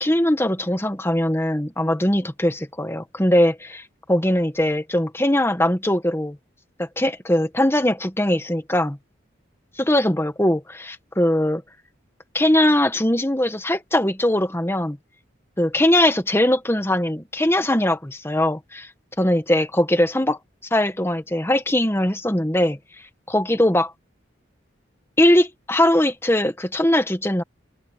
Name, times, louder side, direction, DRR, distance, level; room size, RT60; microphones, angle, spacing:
voice 1, 0.0-6.4 6.8-9.0 9.8-11.6 12.3-15.0 15.6-18.9 19.2-20.4 20.7-22.8 23.3-23.9 25.2-27.4, left 1 dB, 10° left, 1.4 m, -20 dB
head